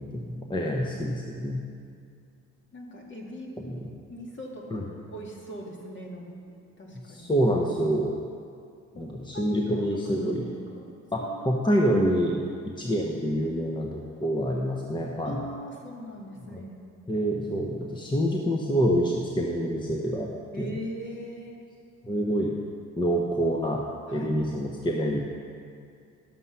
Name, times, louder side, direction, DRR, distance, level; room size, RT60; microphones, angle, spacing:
voice 1, 0.0-1.6 3.6-3.9 4.7-4.8 7.0-8.1 8.9-10.5 11.1-12.4 12.8-15.4 16.5-16.6 17.1-20.3 20.6-20.8 22.0-22.5 23.0-23.8 24.1-25.2, equal, 15° left, -1 dB, 1.0 m, -27 dB
voice 2, 2.7-3.6 4.1-6.3 6.8-7.3 8.9-9.0 9.3-10.9 11.2-11.8 15.2-16.7 20.5-21.6 24.1-24.4, equal, 40° left, -1 dB, 2.2 m, -40 dB
11.0 x 7.1 x 5.7 m, 2.3 s
cardioid pair, 90°, 30 cm